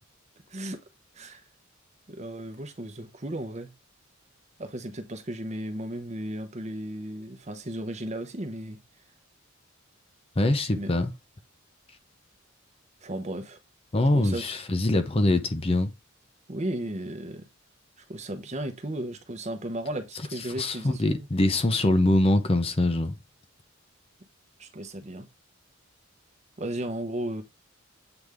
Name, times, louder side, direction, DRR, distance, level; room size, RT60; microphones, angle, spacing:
voice 1, 2.1-3.7 4.6-8.8 10.7-11.1 13.0-13.6 14.1-14.4 16.5-17.4 18.1-21.3 24.6-25.3 26.6-27.4, right 1 dB, 35° right, 0.9 m, -35 dB
voice 2, 10.4-11.1 13.9-15.9 20.6-23.2, left 1 dB, 30° left, 0.7 m, -23 dB
7.9 x 3.5 x 3.5 m
head